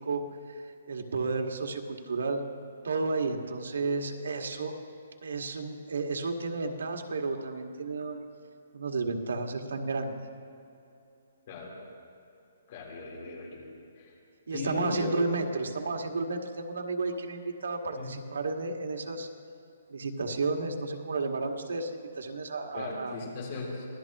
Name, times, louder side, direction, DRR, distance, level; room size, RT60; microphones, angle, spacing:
voice 1, 0.9-2.4 2.8-4.7 5.2-8.2 8.7-10.1 14.5-19.3 19.9-23.2, right 3 dB, 85° right, 3 dB, 1.8 m, -32 dB
voice 2, 12.7-13.7 14.0-14.1 14.5-15.1 17.9-18.1 22.7-23.9, left 3 dB, 35° left, -2 dB, 3.8 m, -37 dB
25.5 x 18.0 x 3.0 m, 2.7 s
hypercardioid pair, 170°, 0 cm